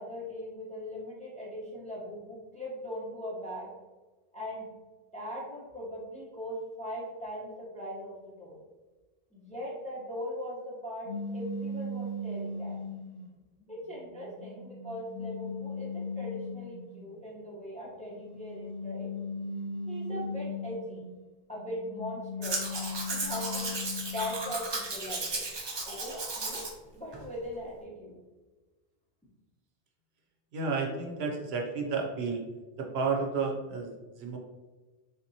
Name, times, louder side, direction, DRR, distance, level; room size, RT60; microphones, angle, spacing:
voice 1, 0.0-3.7 4.3-4.7 5.1-8.6 9.3-12.8 13.7-19.1 19.9-21.0 21.5-22.6 23.1-23.8 24.1-25.4 25.8-26.6 26.9-28.2, equal, 10° left, -5 dB, 0.6 m, -40 dB
sound 1, 11.1-13.2 13.9-17.0 18.1-21.1 21.6-24.5, left 2 dB, 75° left, 0.9 m, -38 dB
Domestic sounds home sounds, 22.4-26.7 27.1-27.2, right 3 dB, 35° right, 0.4 m, -35 dB
voice 2, 30.5-32.4 32.8-34.4, right 4 dB, 70° right, 1 dB, 0.8 m, -31 dB
3.5 x 2.8 x 2.6 m, 1.2 s
omnidirectional pair, 1.1 m